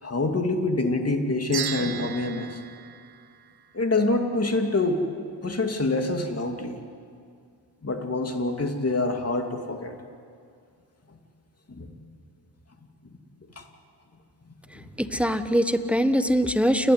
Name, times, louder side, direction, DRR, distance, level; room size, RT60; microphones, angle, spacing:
voice 1, 0.0-2.6 3.7-5.0 5.4-6.7 7.8-9.9 11.7-11.9 13.6-13.7 14.7-14.8, left 2 dB, 30° left, 4 dB, 2.8 m, -26 dB
sound 1, 1.5-4.0, right 8 dB, 50° right, 1.3 m, -36 dB
voice 2, 15.0-16.9, equal, ahead, 10 dB, 1.2 m, -22 dB
29.5 x 11.5 x 9.8 m, 2.3 s
cardioid pair, 70°, 50 cm